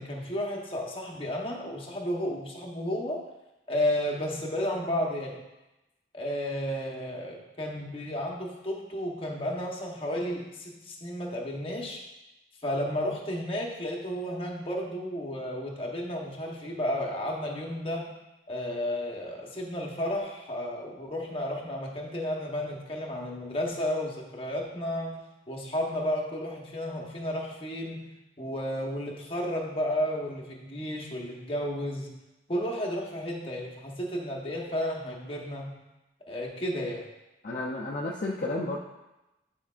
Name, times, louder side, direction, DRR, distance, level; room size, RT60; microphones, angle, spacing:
voice 1, 0.0-3.3 3.7-5.4 6.1-12.0 12.6-18.1 18.5-25.2 25.5-28.1 28.4-32.1 32.5-35.7 36.3-37.0, left 1 dB, 30° left, -1 dB, 1.0 m, -32 dB
voice 2, 37.4-38.8, left 2 dB, 50° left, -3 dB, 0.6 m, -32 dB
9.8 x 4.6 x 2.4 m, 0.98 s
head